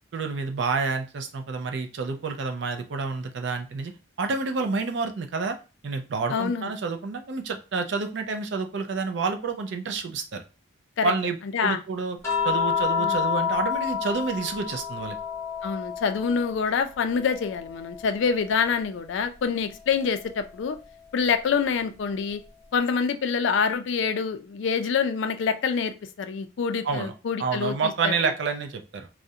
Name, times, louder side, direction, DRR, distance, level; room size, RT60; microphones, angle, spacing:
voice 1, 0.1-3.9 4.2-5.6 5.8-10.4 11.0-11.4 11.6-12.2 12.4-15.2 26.8-27.1 27.4-29.1, right 4 dB, 60° right, 6 dB, 0.4 m, -28 dB
voice 2, 6.3-6.7 11.0-11.1 11.5-11.8 13.0-13.2 15.6-20.8 21.1-22.4 22.7-28.3, left 6 dB, 65° left, 8 dB, 0.3 m, -26 dB
sound 1, 12.2-16.7 17.1-18.7 20.2-20.4, left 7 dB, 15° left, 0.7 m, -29 dB
2.4 x 2.0 x 2.7 m, 0.32 s
head